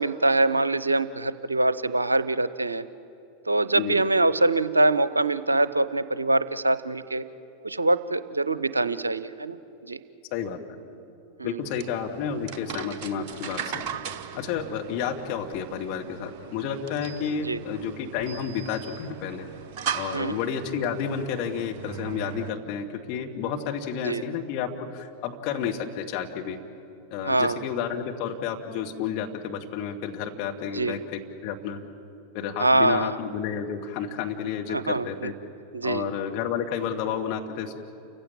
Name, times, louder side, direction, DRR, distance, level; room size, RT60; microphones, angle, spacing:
voice 1, 0.0-2.8 3.5-7.2 7.6-9.6 9.8-10.0 11.4-11.6 17.3-17.6 20.1-20.4 24.0-24.2 27.2-27.6 30.7-31.0 32.6-33.2 34.7-35.3 35.7-36.0, right 2 dB, 80° right, 15 dB, 0.7 m, -24 dB
voice 2, 11.4-13.8 14.3-19.5 19.9-26.6 27.1-31.8 32.3-35.3 35.8-37.8, left 7 dB, 45° left, 2 dB, 2.1 m, -31 dB
sound 1, 11.6-22.5, right 8 dB, 45° right, 1.0 m, -38 dB
29.0 x 15.5 x 8.8 m, 2.8 s
figure-of-eight pair, 90°, 0 cm